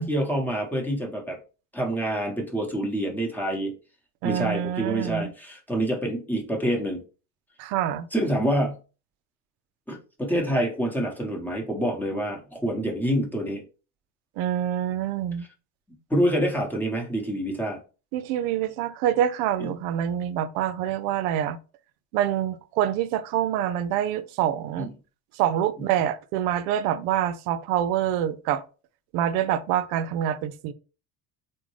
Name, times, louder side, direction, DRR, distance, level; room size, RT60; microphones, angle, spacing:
voice 1, 0.0-1.4 1.7-3.7 4.2-7.0 8.1-8.8 9.9-13.6 16.1-17.8 19.6-19.7 24.8-24.9 25.8-25.9, right 1 dB, 5° left, 1.0 m, -27 dB
voice 2, 4.2-5.3 7.6-8.1 14.4-15.5 18.1-21.6 22.1-24.9 25.3-28.6 29.1-30.7, right 10 dB, 75° right, 0.5 m, -26 dB
3.7 x 2.2 x 3.1 m
supercardioid pair, 100°, 46 cm